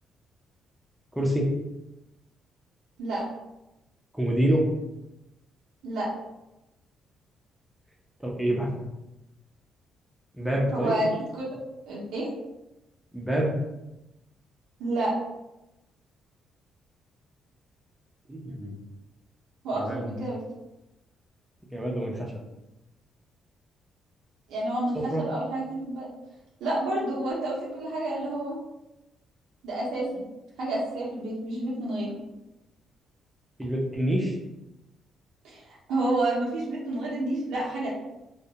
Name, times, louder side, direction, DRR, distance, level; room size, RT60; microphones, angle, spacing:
voice 1, 1.1-1.5 4.1-4.7 8.2-8.7 10.3-11.0 13.1-13.6 18.3-18.7 19.8-20.1 21.7-22.5 24.9-25.2 33.6-34.4, right 1 dB, 5° right, -2 dB, 0.6 m, -27 dB
voice 2, 10.7-11.4 11.9-12.3 14.8-15.1 19.6-20.4 24.5-26.1 26.6-28.6 29.6-30.2 30.6-32.1 35.4-37.9, right 1 dB, 85° right, -6 dB, 0.7 m, -29 dB
2.3 x 2.1 x 2.8 m, 0.95 s
cardioid pair, 90°, 0 cm